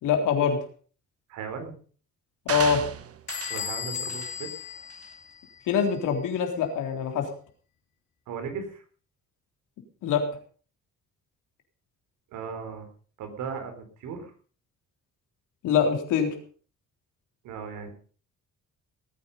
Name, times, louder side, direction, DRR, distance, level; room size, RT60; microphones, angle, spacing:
voice 1, 0.0-0.6 2.5-2.8 5.7-7.3 10.0-10.3 15.6-16.3, left 7 dB, 90° left, 4 dB, 3.7 m, -24 dB
voice 2, 1.3-1.7 3.5-4.5 8.3-8.8 12.3-12.9 13.2-13.7 14.0-14.3 17.4-17.9, right 6 dB, 90° right, 6 dB, 4.2 m, -36 dB
sound 1, 2.5-3.7 4.1-4.4 4.9-5.0, right 8 dB, 50° right, 1.3 m, -34 dB
Bell / Squeak, 3.3-5.8, left 8 dB, 65° left, 3.5 m, -36 dB
19.5 x 9.4 x 5.5 m, 0.43 s
cardioid pair, 90°, 30 cm